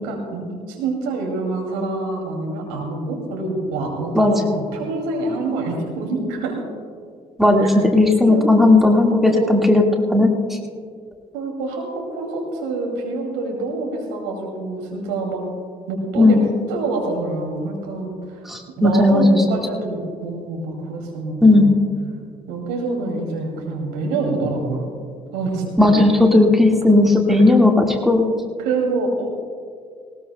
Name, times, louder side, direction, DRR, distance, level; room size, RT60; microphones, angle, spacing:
voice 1, 0.0-6.6 7.6-7.7 8.3-8.4 9.3-9.7 11.3-15.4 15.9-16.4 16.7-21.8 22.5-24.9 25.3-25.9 27.5-27.6 28.6-29.3, right 3 dB, 75° right, 0 dB, 2.4 m, -26 dB
voice 2, 7.4-9.8 10.1-10.6 16.2-16.4 18.4-19.4 21.4-21.7 25.8-28.3, left 2 dB, ahead, 2 dB, 1.7 m, -15 dB
19.0 x 18.5 x 2.2 m, 2.1 s
figure-of-eight pair, 45°, 20 cm